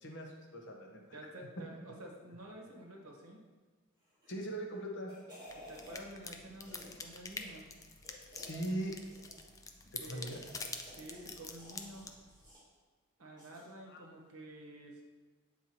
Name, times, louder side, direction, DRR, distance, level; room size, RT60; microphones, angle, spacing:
voice 1, 0.0-1.2 4.3-5.1 8.4-9.0 9.9-10.4 13.9-14.0, right 1 dB, 55° left, 1 dB, 1.0 m, -40 dB
voice 2, 1.1-3.4 5.5-7.7 10.0-10.4 10.8-12.1 13.2-15.0, right 1 dB, 70° right, 0 dB, 1.0 m, -50 dB
sound 1, 4.1-4.5 4.9-6.0 6.6-7.0 7.3-7.5 8.0-8.7 9.1-9.5 10.0-11.3 11.6-12.6 13.4-13.7 14.0-14.1, equal, 20° right, 1.9 m, -54 dB
sound 2, 5.5-12.5, left 4 dB, 15° left, 0.3 m, -47 dB
7.8 x 4.5 x 2.9 m, 1.4 s
head